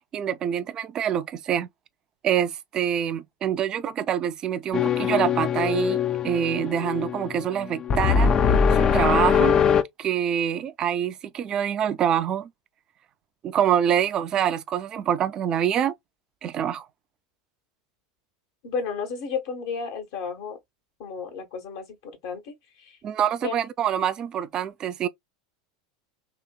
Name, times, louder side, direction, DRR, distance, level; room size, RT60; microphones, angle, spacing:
voice 1, 0.0-1.7 2.2-9.6 10.0-12.5 13.4-15.9 16.4-16.9 23.0-25.1, right 9 dB, 35° right, 0.4 m, -26 dB
sound 1, 4.7-9.8, left 7 dB, 30° left, 0.4 m, -22 dB
voice 2, 18.6-20.6 21.0-23.0 23.4-23.5, left 5 dB, 60° left, 1.3 m, -33 dB
2.9 x 2.9 x 2.2 m
hypercardioid pair, 85°, 2 cm